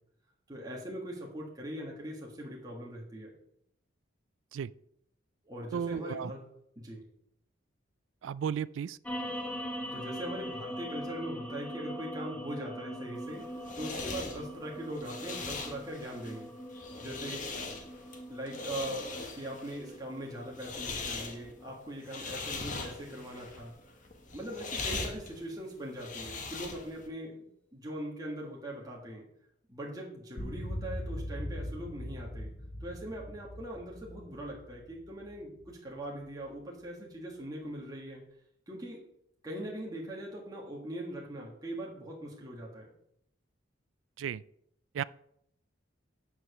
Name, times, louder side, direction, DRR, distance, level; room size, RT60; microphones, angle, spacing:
voice 1, 0.5-3.3 5.4-6.4 6.7-7.0 9.9-13.4 13.7-16.5 17.0-17.5 18.3-19.1 19.3-23.8 24.3-29.3 29.7-32.5 32.8-38.2 38.7-39.0 39.4-42.9, right 1 dB, 20° right, 1.7 m, -41 dB
voice 2, 5.7-6.3 8.2-9.0 44.2-44.4 44.9-45.0, right 8 dB, 80° right, 0.3 m, -34 dB
sound 1, 9.0-23.6, equal, 5° left, 1.2 m, -42 dB
sound 2, 13.2-27.1, left 3 dB, 40° left, 1.4 m, -41 dB
sound 3, 30.4-35.7, equal, 80° left, 1.1 m, -40 dB
9.3 x 4.8 x 6.5 m
head